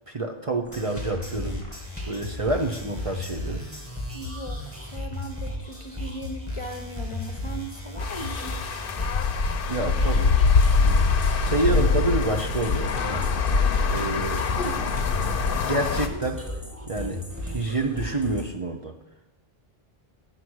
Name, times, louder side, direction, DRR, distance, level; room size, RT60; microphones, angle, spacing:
voice 1, 0.1-1.6 2.1-3.6 9.7-10.4 10.7-11.0 11.4-13.3 13.9-14.6 15.4-16.4 16.9-18.9, right 2 dB, 35° right, 4 dB, 0.7 m, -28 dB
sound 1, 0.6-18.4, left 1 dB, 15° right, 1.9 m, -35 dB
voice 2, 4.1-8.6 14.6-14.8, right 1 dB, 35° left, 5 dB, 0.7 m, -38 dB
sound 2, 8.0-16.1, left 5 dB, 65° left, 0.9 m, -23 dB
9.9 x 6.1 x 6.3 m, 1.0 s
omnidirectional pair, 1.1 m